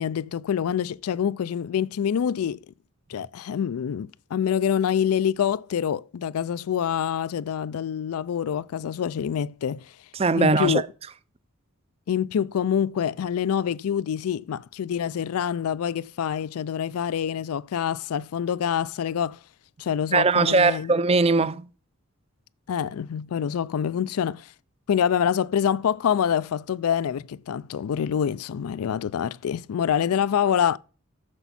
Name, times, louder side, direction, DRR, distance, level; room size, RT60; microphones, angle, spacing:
voice 1, 0.0-2.6 3.1-9.9 10.4-10.8 12.1-19.4 19.8-20.9 22.7-24.5 24.9-30.8, left 8 dB, 85° left, 0.4 m, -26 dB
voice 2, 10.1-10.9 20.1-21.7, right 3 dB, 25° right, 0.4 m, -20 dB
9.9 x 7.0 x 4.2 m
head